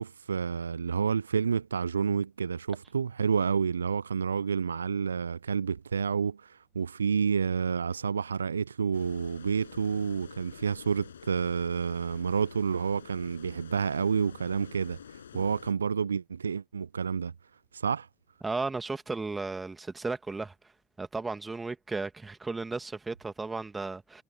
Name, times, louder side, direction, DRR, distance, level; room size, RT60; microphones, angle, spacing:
voice 1, 0.0-17.3 17.7-18.1, right 6 dB, 80° right, 0.7 m, -29 dB
sound 1, 8.9-15.7, left 8 dB, 80° left, 7.5 m, -49 dB
voice 2, 18.4-20.5 21.0-24.2, right 3 dB, 20° right, 2.5 m, -35 dB
figure-of-eight pair, 50°, 0 cm